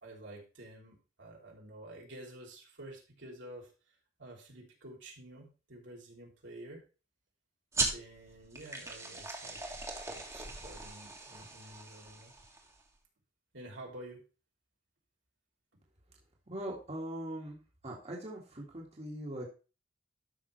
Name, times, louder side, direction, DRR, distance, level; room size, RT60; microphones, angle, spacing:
voice 1, 0.0-3.7 4.2-6.8 7.9-9.6 10.0-12.3 13.5-14.2, right 1 dB, 80° right, -2 dB, 3.0 m, -50 dB
sound 1, 7.7-12.8, right 3 dB, 15° right, 1.7 m, -39 dB
voice 2, 16.5-17.6 17.8-19.4, right 1 dB, 35° right, -3 dB, 1.9 m, -41 dB
12.5 x 5.9 x 3.2 m, 0.33 s
head